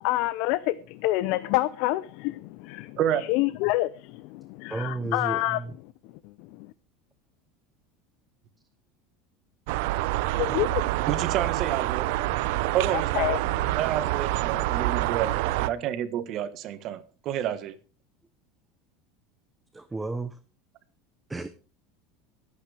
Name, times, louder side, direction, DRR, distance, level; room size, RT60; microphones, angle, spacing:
voice 1, 0.0-5.6 6.2-6.7 10.3-11.0 12.4-12.5 12.9-13.6, left 17 dB, 65° left, 16 dB, 0.6 m, -28 dB
voice 2, 4.7-5.7 19.7-20.4 21.3-21.5, right 3 dB, 10° right, 11 dB, 0.8 m, -33 dB
sound 1, 9.7-15.7, right 17 dB, 70° right, 0.6 m, -27 dB
voice 3, 11.1-12.1 12.7-13.4 13.7-17.7, right 10 dB, 50° right, 12 dB, 1.4 m, -29 dB
24.0 x 8.8 x 3.4 m, 0.36 s
supercardioid pair, 130°, 0 cm